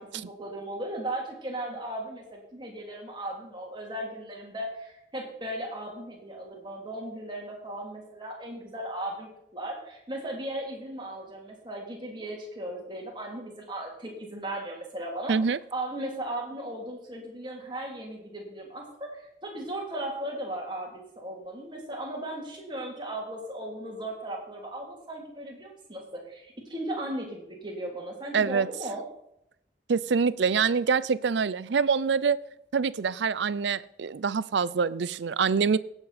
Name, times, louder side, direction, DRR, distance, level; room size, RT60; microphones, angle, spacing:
voice 1, 0.0-15.3 15.7-29.0, right 1 dB, 25° right, 2.9 m, -37 dB
voice 2, 15.3-15.6 28.3-28.7 29.9-32.4 32.7-35.8, right 5 dB, 80° right, 0.5 m, -25 dB
18.0 x 8.0 x 4.2 m
head